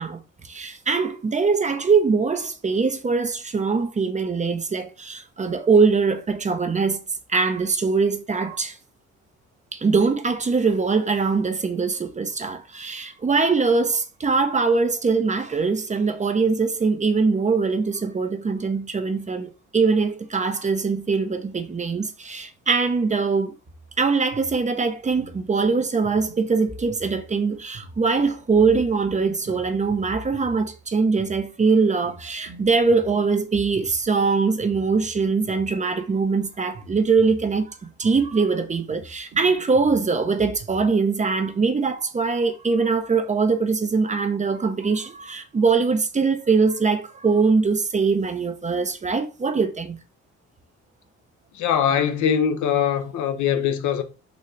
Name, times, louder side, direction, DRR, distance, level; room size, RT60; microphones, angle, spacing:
voice 1, 0.0-7.0 7.3-8.8 9.7-23.5 24.0-50.0, right 4 dB, 25° right, 0.5 m, -22 dB
sound 1, 23.7-40.9, right 2 dB, 50° right, 1.2 m, -44 dB
voice 2, 51.5-54.0, left 8 dB, 80° left, 0.7 m, -22 dB
4.0 x 2.7 x 3.2 m
cardioid pair, 90°, 30 cm